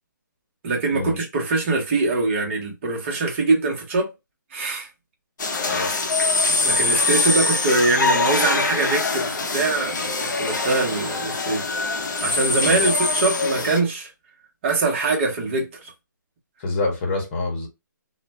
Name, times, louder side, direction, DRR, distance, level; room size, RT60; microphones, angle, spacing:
voice 1, 0.6-4.1 4.5-4.9 6.5-11.7 12.2-14.1 14.6-15.9, right 3 dB, 35° right, 0.9 m, -23 dB
sound 1, 5.4-13.8, left 3 dB, 65° left, 0.7 m, -23 dB
voice 2, 5.6-5.9 12.6-12.9 16.6-17.7, left 3 dB, 35° left, 1.0 m, -26 dB
2.4 x 2.1 x 3.1 m
hypercardioid pair, 155°, 11 cm